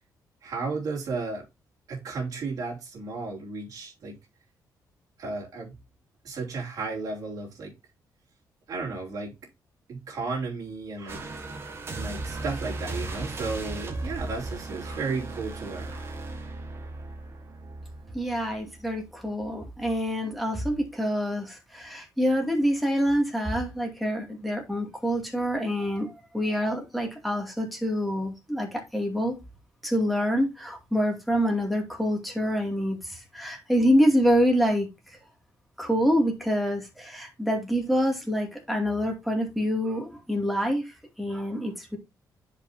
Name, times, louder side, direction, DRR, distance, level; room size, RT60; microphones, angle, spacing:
voice 1, 0.4-1.5 1.9-4.2 5.2-5.7 6.2-7.7 8.7-9.4 9.9-11.4 11.9-16.1, right 4 dB, 60° right, 3.2 m, -34 dB
sound 1, 11.1-19.2 19.6-19.9, right 2 dB, 35° right, 1.4 m, -37 dB
voice 2, 18.1-29.3 29.8-34.9 35.8-40.8 41.2-42.0, equal, ahead, 2.4 m, -26 dB
10.5 x 5.2 x 2.7 m
cardioid pair, 140°, 7 cm